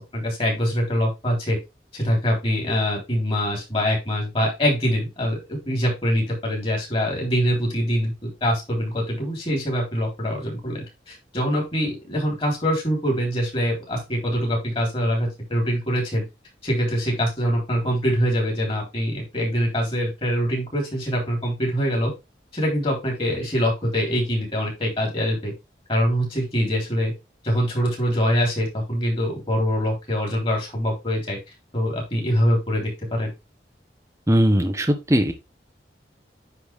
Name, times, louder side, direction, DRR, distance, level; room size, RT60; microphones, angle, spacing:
voice 1, 0.0-1.6 1.9-16.2 16.6-22.1 22.5-25.5 25.9-27.1 27.4-31.4 31.7-33.3, equal, 30° left, -1 dB, 3.6 m, -24 dB
voice 2, 34.3-35.3, equal, 15° right, 6 dB, 0.8 m, -19 dB
9.7 x 4.1 x 3.5 m, 0.24 s
head